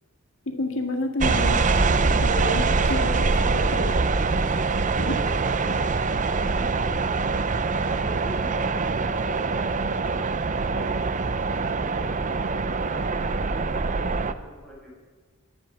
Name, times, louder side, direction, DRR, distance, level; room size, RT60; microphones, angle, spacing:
voice 1, 0.5-1.6 2.0-4.0 5.0-5.2, left 1 dB, 65° left, 4 dB, 1.9 m, -30 dB
sound 1, 1.2-14.3, right 4 dB, 35° right, 0.6 m, -24 dB
voice 2, 5.2-7.2 7.5-9.9 10.4-11.0 11.7-14.9, equal, 5° left, -5 dB, 6.2 m, -44 dB
22.5 x 11.0 x 5.9 m, 1.4 s
head